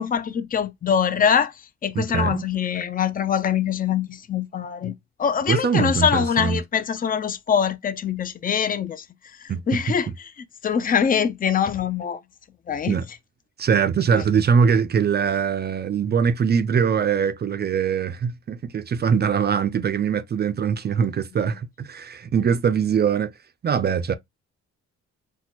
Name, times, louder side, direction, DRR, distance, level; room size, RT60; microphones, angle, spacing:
voice 1, 0.0-4.9 5.2-9.1 9.4-10.1 10.6-12.2 12.7-13.0 14.1-14.2, left 7 dB, 30° left, 0.5 m, -23 dB
voice 2, 2.0-2.4 5.5-6.6 9.5-9.6 12.9-13.0 13.6-23.3 23.6-24.1, right 6 dB, 35° right, 0.4 m, -22 dB
4.2 x 2.3 x 2.9 m
cardioid pair, 90°, 30 cm